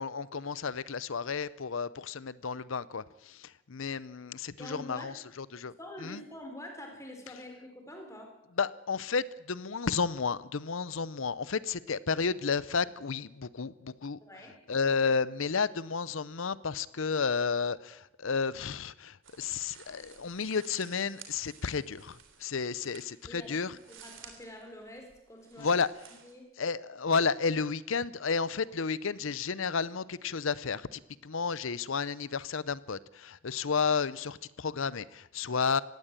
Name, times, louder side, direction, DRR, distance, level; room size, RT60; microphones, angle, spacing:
voice 1, 0.0-5.7 6.0-6.2 8.6-23.8 25.6-25.9 26.6-35.8, left 5 dB, 70° left, 19 dB, 0.7 m, -32 dB
voice 2, 4.6-5.1 5.8-8.4 14.2-14.6 23.3-25.7 26.2-26.5, left 1 dB, 15° left, 3 dB, 4.2 m, -46 dB
sound 1, 19.2-26.4, right 7 dB, 65° right, 3.3 m, -54 dB
19.0 x 16.0 x 9.0 m, 0.90 s
head